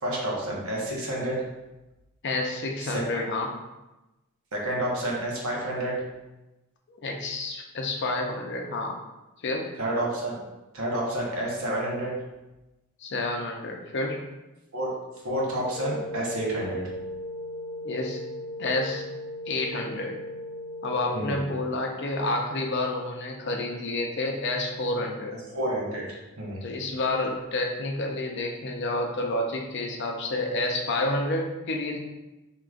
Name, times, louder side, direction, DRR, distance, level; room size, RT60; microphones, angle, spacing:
voice 1, 0.0-1.4 2.8-3.2 4.5-5.9 9.8-10.4 10.7-12.1 14.7-14.9 15.2-16.8 21.1-21.3 25.5-26.0 26.4-26.6, right 1 dB, 75° right, -3 dB, 1.1 m, -29 dB
voice 2, 2.2-3.5 6.9-9.0 9.4-9.7 13.0-14.2 17.8-18.2 18.6-19.0 19.5-20.1 20.8-25.3 26.6-32.0, left 2 dB, 55° left, 2 dB, 0.6 m, -29 dB
sound 1, 15.7-21.4, left 1 dB, 30° left, 1.1 m, -37 dB
4.7 x 2.9 x 2.4 m, 1.0 s
head